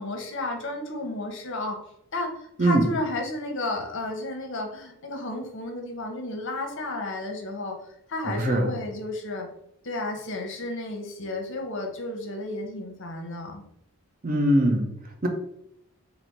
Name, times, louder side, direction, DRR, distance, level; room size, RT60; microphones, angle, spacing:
voice 1, 0.0-1.8 2.1-7.8 8.1-9.5 9.8-13.6, left 2 dB, 55° left, 3 dB, 0.7 m, -32 dB
voice 2, 8.3-8.7 14.2-14.9 15.2-15.3, right 1 dB, 40° right, 3 dB, 0.6 m, -21 dB
4.0 x 2.0 x 4.4 m, 0.75 s
head